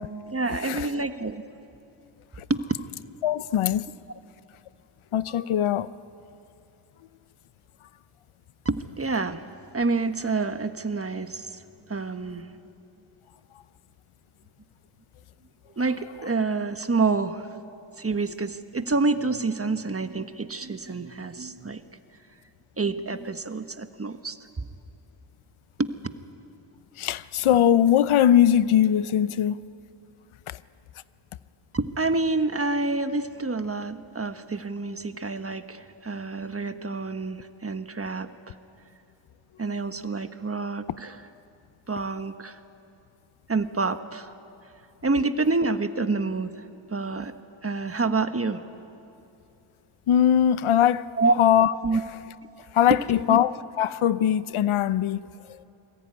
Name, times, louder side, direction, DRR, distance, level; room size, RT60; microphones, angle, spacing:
voice 1, 0.3-1.4 2.5-2.6 8.6-9.4 9.7-11.6 11.9-12.5 15.8-17.6 18.0-21.8 22.8-24.7 25.8-26.1 31.7-38.5 39.6-41.2 41.9-42.6 43.5-44.3 45.0-47.3 47.6-48.6 51.2-51.4 51.8-52.0 52.9-53.0 53.3-53.4, right 3 dB, 30° right, 1.4 m, -28 dB
voice 2, 3.2-3.8 5.1-5.9 27.0-29.6 30.5-30.6 50.1-51.1 51.4-51.7 52.7-55.3, left 10 dB, 85° left, 0.8 m, -21 dB
28.5 x 20.5 x 9.8 m
cardioid pair, 65°, 48 cm